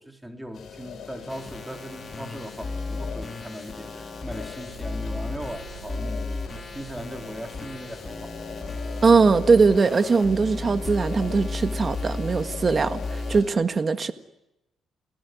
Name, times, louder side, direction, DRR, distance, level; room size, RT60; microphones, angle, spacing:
voice 1, 0.0-8.3, equal, 5° right, 4 dB, 4.1 m, -39 dB
sound 1, 0.5-13.5, left 7 dB, 60° left, 7.6 m, -42 dB
sound 2, 1.3-13.4, left 3 dB, 25° left, 3.9 m, -34 dB
sound 3, 4.3-10.4, right 9 dB, 80° right, 4.7 m, -48 dB
voice 2, 9.0-14.1, right 4 dB, 35° right, 10 dB, 1.7 m, -20 dB
29.0 x 18.5 x 9.5 m, 0.91 s
cardioid pair, 90°, 0 cm